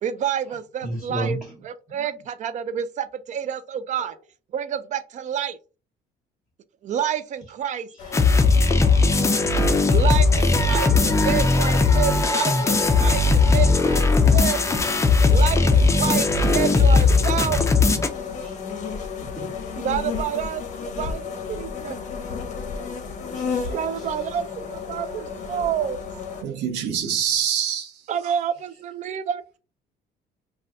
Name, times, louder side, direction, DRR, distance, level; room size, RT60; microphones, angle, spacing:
voice 1, 0.0-1.4 1.6-4.2 4.5-5.6 6.8-7.9 9.9-14.6 15.3-17.6 19.8-22.0 23.7-26.0 28.1-29.6, right 9 dB, 45° right, 0.4 m, -28 dB
voice 2, 0.8-1.6 1.9-2.2 4.0-4.2 7.7-8.1 10.3-11.0 15.3-15.4 15.6-16.8 17.1-17.3 17.9-18.6 19.2-19.6 20.2-20.4 21.0-21.1 22.9-24.3 24.8-25.4, right 1 dB, 5° right, 1.0 m, -36 dB
sound 1, 8.0-26.4, left 5 dB, 45° left, 0.7 m, -33 dB
sound 2, 8.1-18.1, left 3 dB, 15° left, 0.4 m, -18 dB
voice 3, 26.4-27.9, right 8 dB, 90° right, 0.7 m, -25 dB
2.5 x 2.3 x 3.4 m
cardioid pair, 110°, 17 cm